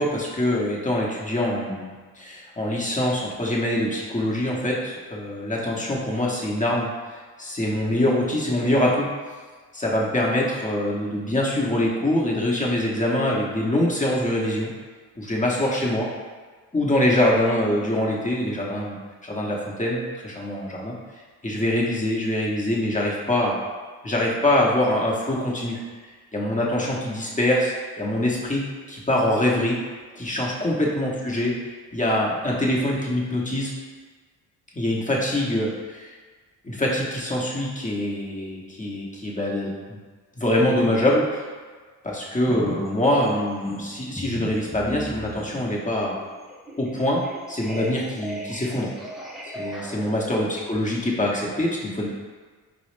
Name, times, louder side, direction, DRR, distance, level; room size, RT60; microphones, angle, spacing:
voice 1, 0.0-9.1 9.7-14.7 15.2-16.1 16.7-21.0 21.4-23.6 24.0-25.8 26.3-28.6 28.9-29.8 30.2-31.6 31.9-33.7 34.7-36.1 36.6-40.0 40.4-41.4 42.0-46.2 46.8-47.2 47.5-48.9 49.5-52.1, left 1 dB, 15° left, -4 dB, 1.0 m, -24 dB
sound 1, 42.5-42.9 43.2-50.1, right 1 dB, ahead, 0.5 m, -37 dB
4.7 x 2.1 x 3.2 m, 1.5 s
hypercardioid pair, 55°, 47 cm